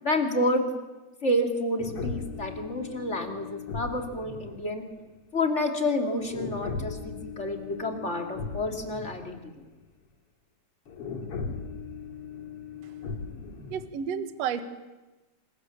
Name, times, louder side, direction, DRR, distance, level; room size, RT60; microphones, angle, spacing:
voice 1, 0.0-0.7 1.2-4.8 5.3-9.4, left 1 dB, 20° left, 4 dB, 2.3 m, -29 dB
sound 1, 1.8-5.1 6.2-9.4 9.7-9.8 10.9-13.9, left 5 dB, 40° left, 3.0 m, -38 dB
voice 2, 13.7-14.6, right 8 dB, 55° right, 10 dB, 2.0 m, -31 dB
27.5 x 27.5 x 7.3 m, 1.1 s
omnidirectional pair, 4.8 m